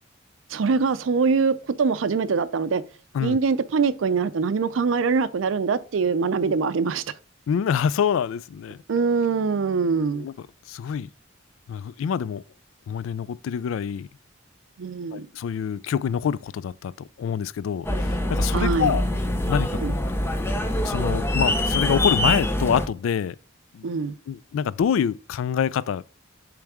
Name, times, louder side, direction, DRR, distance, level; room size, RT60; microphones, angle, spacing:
voice 1, 0.5-2.8 3.2-7.0 8.9-10.3 14.8-15.3 18.5-19.0 19.8-19.9 23.8-24.1, right 5 dB, 75° right, 0.4 m, -23 dB
voice 2, 7.5-8.8 10.1-11.1 11.7-12.4 12.9-14.1 15.1-19.1 19.5-19.8 20.8-23.4 23.7-23.9 24.3-26.0, left 7 dB, 80° left, 0.3 m, -26 dB
sound 1, 17.8-22.9, left 1 dB, 10° left, 0.6 m, -24 dB
7.0 x 3.3 x 4.8 m
head